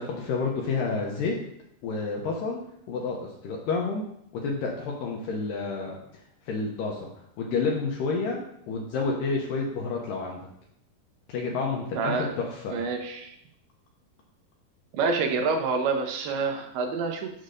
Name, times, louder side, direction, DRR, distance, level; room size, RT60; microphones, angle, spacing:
voice 1, 0.0-1.4 1.8-2.6 2.9-4.0 4.3-6.0 6.5-7.1 7.4-8.4 8.7-10.5 11.3-12.8, left 4 dB, 80° left, -1 dB, 2.1 m, -29 dB
voice 2, 11.9-12.3 12.7-13.4 14.9-17.3, right 4 dB, 80° right, 3 dB, 2.7 m, -27 dB
7.4 x 6.4 x 2.6 m, 0.74 s
omnidirectional pair, 4.6 m